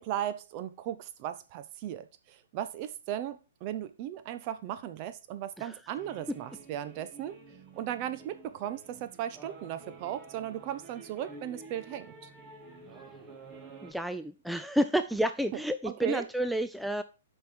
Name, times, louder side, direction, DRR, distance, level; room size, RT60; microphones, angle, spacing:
voice 1, 0.0-7.4 7.8-12.1 15.8-16.2, right 11 dB, 40° right, 11 dB, 1.0 m, -36 dB
sound 1, 5.9-13.9, right 3 dB, 20° right, 2.2 m, -50 dB
voice 2, 13.8-17.0, equal, ahead, 9 dB, 0.5 m, -30 dB
8.5 x 5.6 x 4.5 m, 0.30 s
hypercardioid pair, 120°, 0 cm